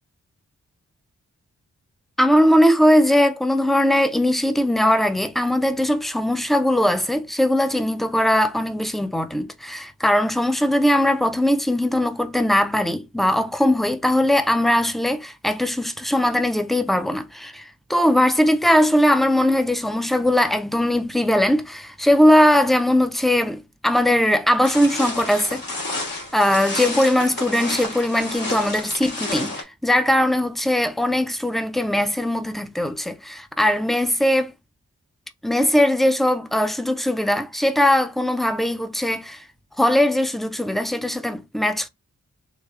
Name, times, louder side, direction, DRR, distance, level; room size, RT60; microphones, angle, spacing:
voice 1, 2.2-25.6 26.3-34.5 35.4-39.4 39.8-41.9, left 1 dB, ahead, 0.3 m, -20 dB
sound 1, 24.6-29.6, left 2 dB, 85° left, 1.6 m, -30 dB
3.4 x 3.3 x 2.3 m
wide cardioid pair, 135°, 33 cm